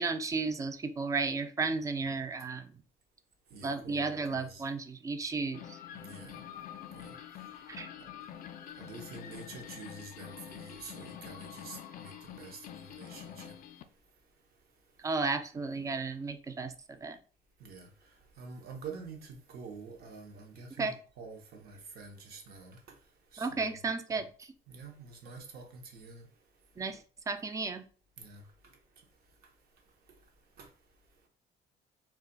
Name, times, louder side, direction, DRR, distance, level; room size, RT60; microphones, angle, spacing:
voice 1, 0.0-2.7 3.6-5.8 7.7-7.9 15.0-16.7 17.0-17.2 20.8-20.9 23.4-24.5 26.8-27.8, right 4 dB, 20° right, 0.3 m, -33 dB
voice 2, 3.5-4.6 5.9-6.4 6.9-7.2 8.0-8.1 8.8-13.5 17.6-17.9 18.4-22.8 23.3-23.8 24.1-24.2 24.7-26.3 28.2-28.4 30.6-30.7, right 4 dB, 65° right, 0.8 m, -47 dB
sound 1, 5.5-13.8, left 10 dB, 55° left, 0.4 m, -46 dB
2.3 x 2.2 x 3.8 m
cardioid pair, 110°, 17 cm